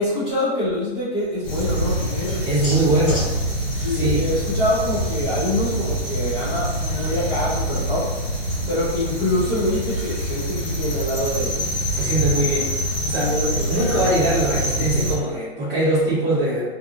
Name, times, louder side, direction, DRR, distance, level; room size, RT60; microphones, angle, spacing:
voice 1, 0.0-3.0 3.8-8.1 8.7-11.7 13.2-14.0, left 1 dB, ahead, -22 dB, 0.6 m, -25 dB
sound 1, 1.4-15.2, equal, 20° left, 1.1 m, -25 dB
voice 2, 2.4-3.2 3.9-4.2 11.9-12.7 13.0-13.3 13.7-16.6, right 1 dB, 25° right, -11 dB, 1.2 m, -22 dB
2.7 x 2.4 x 2.5 m, 1.2 s
hypercardioid pair, 165°, 33 cm